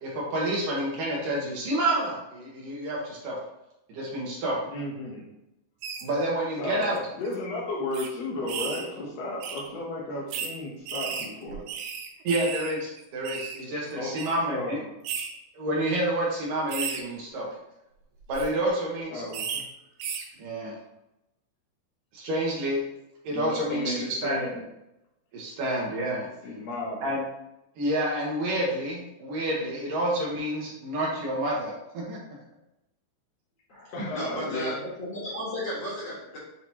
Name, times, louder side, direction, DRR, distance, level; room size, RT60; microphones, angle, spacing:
voice 1, 0.0-3.4 3.9-4.6 6.0-7.0 12.2-14.8 15.5-17.5 18.3-19.2 20.4-20.7 22.1-22.8 23.2-24.4 25.3-26.3 27.0-27.2 27.8-32.2, right 1 dB, 65° right, -4 dB, 2.7 m, -29 dB
voice 2, 4.7-5.2 6.6-11.6 13.9-14.1 14.5-14.8 19.1-19.4 23.3-24.6 26.4-27.1 33.9-34.8, left 1 dB, 90° left, -4 dB, 1.4 m, -34 dB
sound 1, 5.8-6.0 6.8-7.0 7.2-7.3 7.9-8.1 8.5-8.9 9.4-9.6 10.3-10.5 10.9-12.7 13.0-13.6 14.2-14.4 15.0-15.3 15.8-16.0 16.7-17.0 18.2-18.5 19.3-19.6 20.0-20.2, right 7 dB, 80° right, 2.4 m, -34 dB
voice 3, 33.7-36.4, equal, 50° left, -8 dB, 2.0 m, -34 dB
8.1 x 3.9 x 3.0 m, 0.87 s
omnidirectional pair, 4.7 m